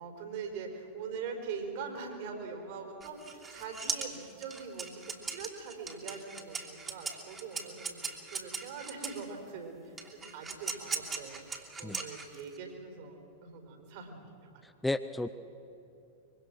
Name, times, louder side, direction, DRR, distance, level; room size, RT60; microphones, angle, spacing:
voice 1, 0.0-14.3 14.5-14.6, right 5 dB, 50° right, 4 dB, 4.4 m, -43 dB
sound 1, 3.0-9.2 10.0-12.6, right 4 dB, 20° right, 3.0 m, -39 dB
voice 2, 14.6-15.3, left 2 dB, 5° left, 11 dB, 0.6 m, -33 dB
24.5 x 23.5 x 6.2 m, 2.9 s
figure-of-eight pair, 90°, 0 cm